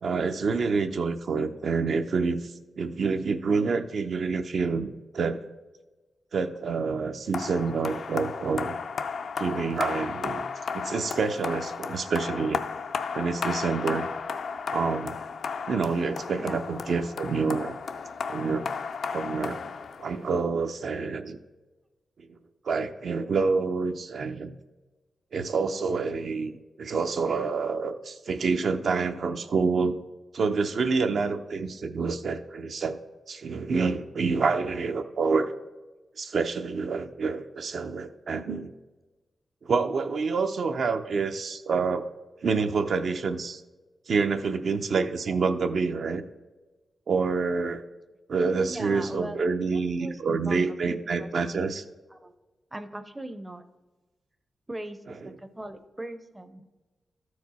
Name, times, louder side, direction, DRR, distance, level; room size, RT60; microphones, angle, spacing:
voice 1, 0.0-5.4 6.3-8.8 9.4-10.5 10.7-12.7 13.1-14.1 14.7-15.2 15.7-17.8 18.3-18.7 19.1-19.7 20.0-21.4 22.2-22.3 22.6-24.5 25.3-29.9 30.3-33.0 33.3-35.5 36.2-38.7 39.6-42.1 42.4-43.6 44.1-46.2 47.1-47.8 48.3-51.8, right 4 dB, 60° right, 7 dB, 0.5 m, -27 dB
sound 1, 7.3-20.4, left 5 dB, 70° left, 0.4 m, -34 dB
voice 2, 48.7-51.6 52.1-52.3 52.7-53.6 54.7-56.6, right 1 dB, 10° right, 9 dB, 0.5 m, -40 dB
13.5 x 4.7 x 4.1 m, 1.2 s
wide cardioid pair, 130°, 0 cm